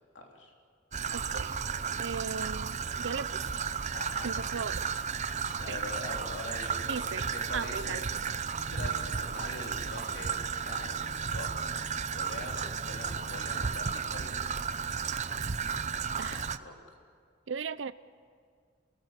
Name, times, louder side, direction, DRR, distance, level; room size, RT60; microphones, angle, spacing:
voice 1, 0.1-0.5 3.9-4.4 5.6-8.0 8.7-11.0 11.3-11.7 12.1-14.4 14.9-15.0 16.2-16.7, left 2 dB, 75° left, 0 dB, 3.3 m, -43 dB
Traffic noise roadway noise / Trickle dribble, 0.9-16.6, right 6 dB, 40° right, 0.6 m, -34 dB
voice 2, 1.1-1.6 2.0-3.5 4.2-4.9 5.7-5.8 6.9-7.2 7.5-8.5 16.2-16.5 17.5-17.9, right 6 dB, 80° right, 16 dB, 0.6 m, -37 dB
29.0 x 19.5 x 8.2 m, 2.1 s
head